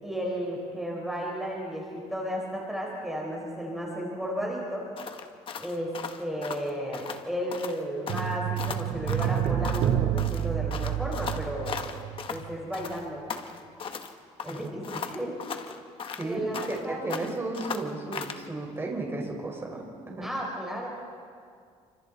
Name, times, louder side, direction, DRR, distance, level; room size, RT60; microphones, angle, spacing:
voice 1, 0.0-4.9 5.6-5.9 6.2-11.9 12.3-13.2 14.4-15.4 16.2-17.2 20.2-20.9, equal, 5° right, -3 dB, 4.8 m, -33 dB
sound 1, 5.0-7.2 7.5-7.8 8.1-9.9 10.2-12.4 12.7-14.1 14.4-16.8 17.1-18.4, left 6 dB, 45° left, 1.5 m, -37 dB
sound 2, 8.1-12.6 12.8-12.9, right 11 dB, 65° right, 1.1 m, -29 dB
voice 2, 14.5-14.9 16.1-16.4 16.7-20.3, right 2 dB, 20° right, -1 dB, 4.9 m, -34 dB
28.5 x 25.5 x 4.2 m, 2.2 s
cardioid pair, 115°, 12 cm